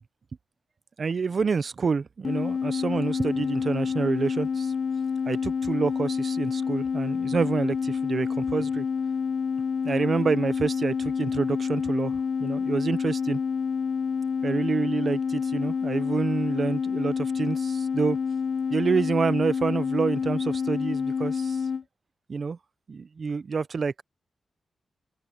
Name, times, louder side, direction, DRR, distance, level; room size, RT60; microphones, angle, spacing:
voice 1, 1.0-4.7 5.3-8.9 9.8-13.4 14.4-18.2 18.7-21.6 22.3-22.6 22.9-24.0, right 5 dB, 50° right, 0.7 m, -27 dB
sound 1, 2.2-21.8, left 6 dB, 65° left, 0.7 m, -28 dB
open air
cardioid pair, 95°, 0 cm